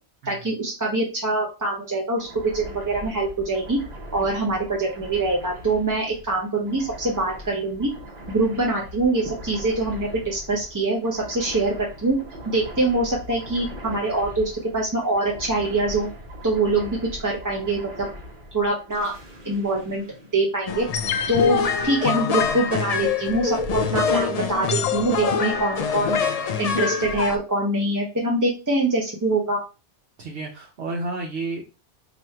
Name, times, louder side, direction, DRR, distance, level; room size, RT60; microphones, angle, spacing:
voice 1, 0.3-3.8 4.1-7.9 8.3-11.7 12.0-12.2 12.5-16.1 16.4-18.1 18.5-19.1 19.4-20.0 20.3-20.8 21.3-21.6 21.8-26.2 26.6-29.6, right 2 dB, 20° right, -2 dB, 0.6 m, -24 dB
sound 1, 2.2-21.0, equal, 45° right, 1.2 m, -40 dB
sound 2, 20.7-27.4, left 6 dB, 60° left, 0.4 m, -24 dB
voice 2, 30.2-31.6, right 3 dB, 70° right, -1 dB, 1.0 m, -31 dB
3.1 x 2.5 x 4.3 m, 0.30 s
omnidirectional pair, 1.2 m